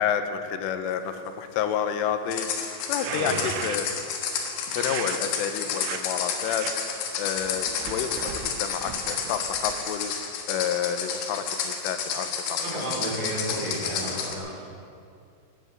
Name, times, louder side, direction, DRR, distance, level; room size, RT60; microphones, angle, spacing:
voice 1, 0.0-3.3 3.6-3.9 4.7-12.7, left 8 dB, 85° left, 9 dB, 3.4 m, -30 dB
sound 1, 2.3-14.3, left 6 dB, 70° left, 3.6 m, -31 dB
sound 2, 2.8-4.0 4.7-5.2 5.7-6.0 6.4-6.7 7.4-10.0, right 8 dB, 80° right, 3.5 m, -36 dB
voice 2, 3.1-3.4 12.6-14.9, right 1 dB, 40° right, -5 dB, 5.2 m, -32 dB
14.5 x 10.5 x 9.1 m, 2.4 s
omnidirectional pair, 5.8 m